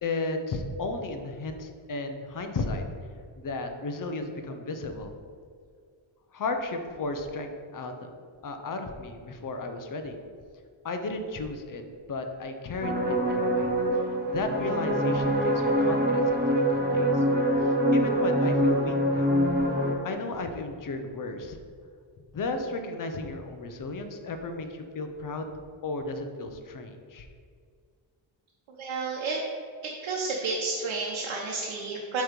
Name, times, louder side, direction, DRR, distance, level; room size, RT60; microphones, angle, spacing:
voice 1, 0.0-2.8 3.4-5.2 6.3-8.1 8.4-10.2 10.8-11.8 12.1-13.7 14.3-16.4 16.7-17.3 17.6-19.3 20.0-21.6 22.3-25.5 25.8-27.3, left 3 dB, 45° left, 6 dB, 0.6 m, -34 dB
sound 1, 12.8-20.0, equal, 20° right, 0.6 m, -24 dB
voice 2, 28.8-29.4 29.8-32.2, right 4 dB, 85° right, -2 dB, 1.0 m, -31 dB
7.9 x 3.1 x 5.1 m, 2.1 s
wide cardioid pair, 175°, 48 cm